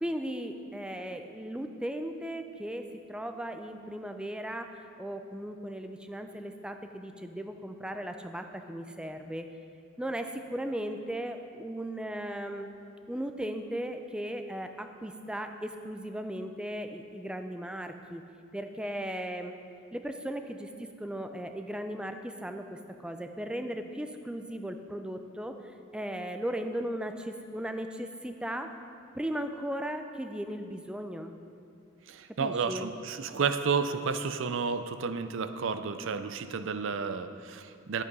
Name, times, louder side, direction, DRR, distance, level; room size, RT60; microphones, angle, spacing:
voice 1, 0.0-4.7 5.0-9.5 10.0-12.7 13.1-18.2 18.5-19.5 19.9-25.5 25.9-28.7 29.2-31.4 32.4-32.9, right 1 dB, 5° right, 6 dB, 0.4 m, -37 dB
voice 2, 32.1-38.0, right 5 dB, 65° right, 10 dB, 0.5 m, -31 dB
10.5 x 8.3 x 5.4 m, 2.4 s
head